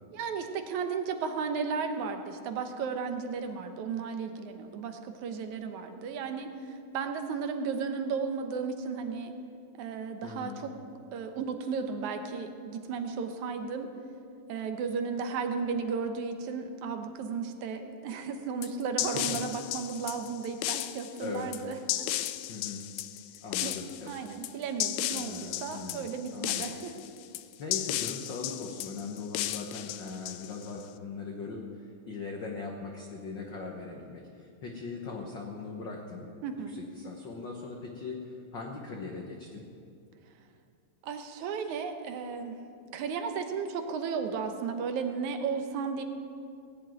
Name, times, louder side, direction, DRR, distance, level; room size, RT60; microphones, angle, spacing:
voice 1, 0.1-9.3 9.7-10.7 11.1-13.9 14.5-22.1 23.6-23.7 24.1-26.9 36.4-36.8 41.0-42.6 42.9-46.0, right 5 dB, 75° right, 6 dB, 2.4 m, -34 dB
voice 2, 10.2-10.6 19.1-19.4 21.2-21.5 22.5-22.8 23.4-24.2 25.1-26.7 27.6-36.3 36.7-39.7, left 4 dB, 55° left, 0 dB, 1.4 m, -40 dB
sound 1, 18.6-30.8, left 14 dB, 80° left, 1.8 m, -34 dB
18.0 x 7.7 x 9.1 m, 2.4 s
omnidirectional pair, 3.5 m